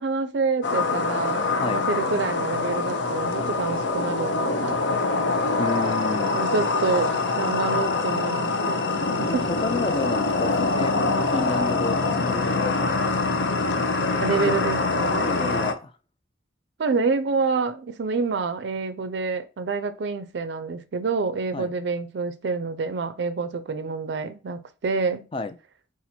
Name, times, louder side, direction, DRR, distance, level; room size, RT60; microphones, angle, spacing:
voice 1, 0.0-5.3 6.3-8.8 9.2-9.5 14.2-15.3 16.8-25.3, right 4 dB, 60° right, 0.4 m, -27 dB
sound 1, 0.6-15.7, left 3 dB, 70° left, 0.6 m, -24 dB
voice 2, 1.6-1.9 5.6-6.4 9.3-12.7 14.0-14.6 15.3-15.9 21.5-21.7 25.3-25.6, left 3 dB, 30° left, 0.4 m, -31 dB
4.1 x 2.5 x 4.2 m
head